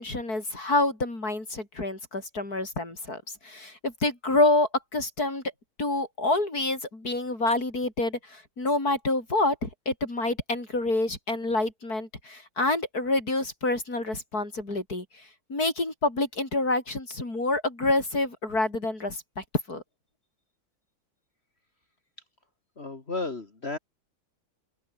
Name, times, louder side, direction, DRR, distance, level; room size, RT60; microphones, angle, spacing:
voice 1, 0.0-5.4 5.8-19.8, left 2 dB, 85° left, 7.0 m, -27 dB
voice 2, 22.8-23.8, left 3 dB, 45° left, 2.9 m, -33 dB
open air
omnidirectional pair, 1.6 m